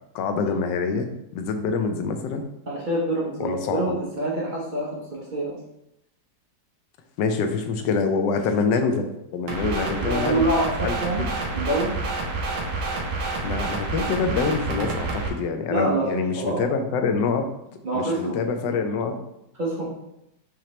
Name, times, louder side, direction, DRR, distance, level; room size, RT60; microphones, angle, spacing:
voice 1, 0.1-1.1 1.3-2.4 3.4-3.9 7.2-10.4 10.8-10.9 13.4-17.4 17.9-19.2, left 4 dB, 75° left, 6 dB, 1.2 m, -25 dB
voice 2, 2.7-5.6 10.0-11.2 11.5-11.9 15.7-16.6 17.8-18.4 19.6-19.9, right 1 dB, 70° right, -5 dB, 0.4 m, -26 dB
sound 1, 9.5-15.3, right 3 dB, 90° right, 1.6 m, -28 dB
5.7 x 2.9 x 3.1 m, 0.84 s
omnidirectional pair, 2.1 m